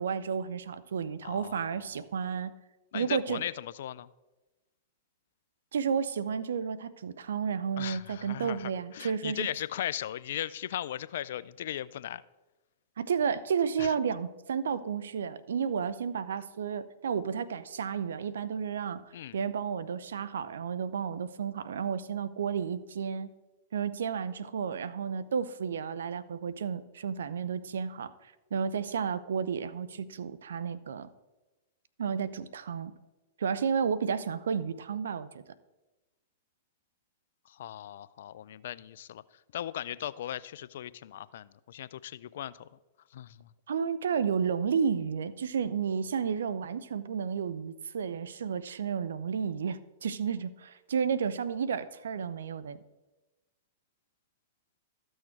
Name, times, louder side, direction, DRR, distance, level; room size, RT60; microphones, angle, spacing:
voice 1, 0.0-2.5 2.9-3.4 5.7-9.5 13.0-19.0 19.3-23.3 23.7-28.1 28.5-31.1 32.0-32.9 33.4-35.4 43.7-52.8, right 6 dB, 80° right, 15 dB, 0.5 m, -32 dB
voice 2, 1.2-2.0 2.9-4.1 7.8-12.2 13.8-14.0 19.1-19.4 37.5-42.7 43.1-43.5, left 11 dB, 65° left, 18 dB, 0.4 m, -38 dB
13.0 x 6.4 x 4.5 m, 1.1 s
hypercardioid pair, 110°, 0 cm